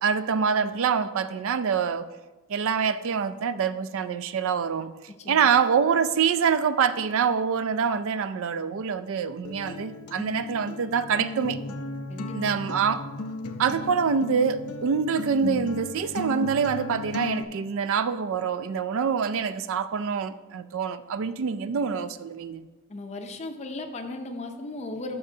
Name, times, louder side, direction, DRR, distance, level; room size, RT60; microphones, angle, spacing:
voice 1, 0.0-2.1 2.5-4.9 5.3-11.6 12.3-13.1 13.6-22.7, right 6 dB, 65° right, 13 dB, 0.4 m, -25 dB
voice 2, 5.2-5.6 12.1-12.6 22.9-25.2, left 2 dB, 30° left, 5 dB, 0.5 m, -36 dB
Acoustic guitar, 9.4-17.4, left 2 dB, 80° left, 0.6 m, -36 dB
11.5 x 6.4 x 2.7 m, 1.2 s
head